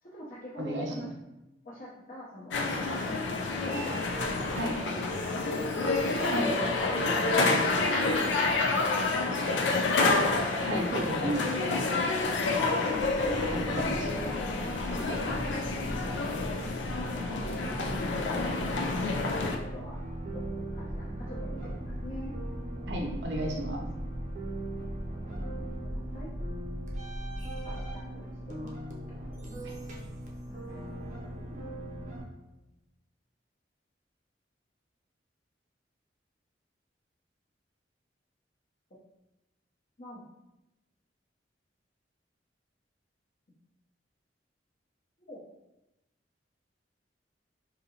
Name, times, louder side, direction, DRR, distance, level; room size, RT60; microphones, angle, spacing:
voice 1, 0.0-1.1 1.6-4.8 5.3-5.7 6.7-10.3 13.2-15.1 16.1-16.8 17.3-18.3 19.5-20.0 20.2-20.4 20.7-22.4 25.2-25.3 25.9-26.3 27.0-27.1 27.6-28.8 30.4-30.8 40.0-40.2 45.2-45.4, equal, 45° left, -7 dB, 0.6 m, -45 dB
voice 2, 0.6-1.1 3.0-3.1 4.5-4.8 6.3-6.5 10.6-11.5 13.5-14.2 15.1-15.2 22.9-23.9 29.6-29.7, right 1 dB, 85° right, 0 dB, 0.7 m, -33 dB
sound 1, 2.5-19.5, left 3 dB, 90° left, 0.5 m, -28 dB
sound 2, 13.0-32.2, right 1 dB, 40° right, 0.5 m, -38 dB
3.8 x 2.7 x 2.8 m, 0.97 s
head